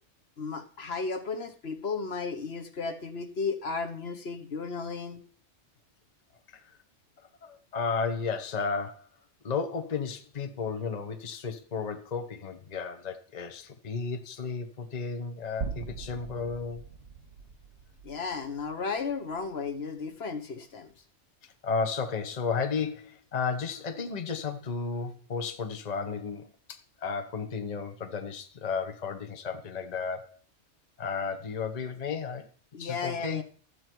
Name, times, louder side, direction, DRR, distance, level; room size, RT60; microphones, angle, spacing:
voice 1, 0.4-5.2 18.0-20.9 32.7-33.4, left 4 dB, 60° left, 1.3 m, -34 dB
voice 2, 7.4-9.1 9.4-16.9 21.4-30.4 31.0-32.5 32.8-33.4, left 5 dB, 35° left, 1.0 m, -33 dB
sound 1, 15.6-19.8, right 5 dB, 65° right, 1.9 m, -42 dB
12.5 x 8.3 x 4.6 m
omnidirectional pair, 1.2 m